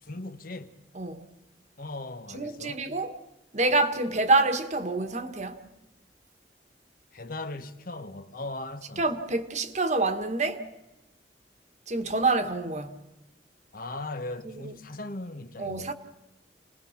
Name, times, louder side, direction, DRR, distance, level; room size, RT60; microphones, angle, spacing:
voice 1, 0.0-0.8 1.8-2.8 7.1-9.0 13.7-15.9, left 2 dB, 50° left, 1.3 m, -38 dB
voice 2, 0.9-1.3 2.3-3.2 3.5-5.6 9.0-10.6 11.9-12.9 14.4-14.7 15.6-15.9, right 3 dB, 40° right, 1.6 m, -27 dB
30.0 x 20.0 x 5.9 m
head